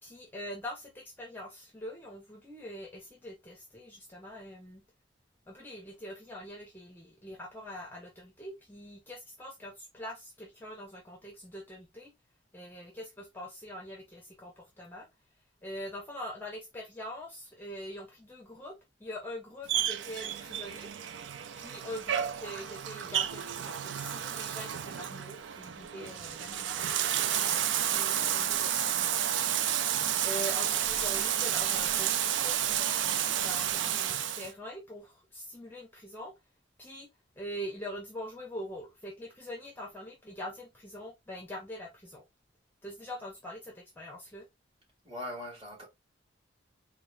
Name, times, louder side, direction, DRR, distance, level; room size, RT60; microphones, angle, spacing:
voice 1, 0.0-4.8 5.5-12.1 12.5-15.1 15.6-20.9 21.5-29.4 30.2-36.3 36.8-37.1 37.4-42.2 42.8-44.4, equal, 10° left, 0.7 m, -43 dB
Bathtub (filling or washing), 19.7-34.5, right 10 dB, 70° right, 0.4 m, -31 dB
voice 2, 45.0-45.9, left 1 dB, 30° right, 1.9 m, -40 dB
3.7 x 2.3 x 3.2 m
head